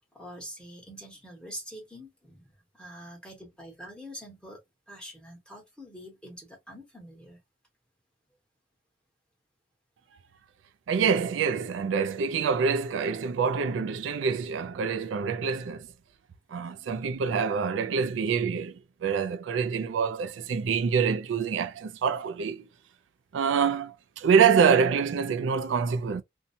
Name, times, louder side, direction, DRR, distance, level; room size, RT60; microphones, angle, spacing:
voice 1, 0.1-4.6 4.9-7.4, equal, 5° left, 1.2 m, -45 dB
voice 2, 10.9-15.9 16.5-22.6 23.3-26.2, right 6 dB, 75° right, 0.4 m, -26 dB
2.6 x 2.2 x 2.6 m
head